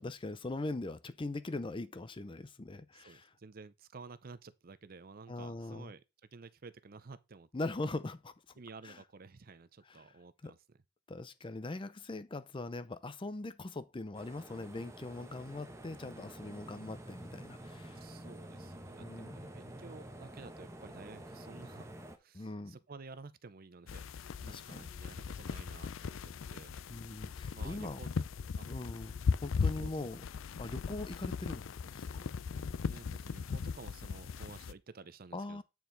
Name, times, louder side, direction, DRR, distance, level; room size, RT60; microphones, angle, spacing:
voice 1, 0.0-3.3 5.3-5.9 7.5-8.3 8.8-9.0 9.9-10.1 10.4-10.5 11.1-18.0 19.0-19.5 22.3-22.8 24.5-24.9 26.9-28.0 28.7-29.1 29.4-30.2 30.6-31.7 31.9-32.2 35.3-35.6, left 2 dB, 25° left, 0.5 m, -41 dB
voice 2, 2.9-6.0 6.3-7.5 8.6-10.8 18.0-21.9 22.2-24.1 24.4-26.7 27.5-28.1 28.6-28.7 29.5-30.2 30.6-30.7 32.9-35.6, right 4 dB, 50° right, 0.6 m, -52 dB
sound 1, 14.1-22.2, right 1 dB, 15° right, 1.0 m, -49 dB
sound 2, 23.9-34.7, left 5 dB, 80° left, 0.4 m, -38 dB
9.0 x 4.5 x 3.9 m
head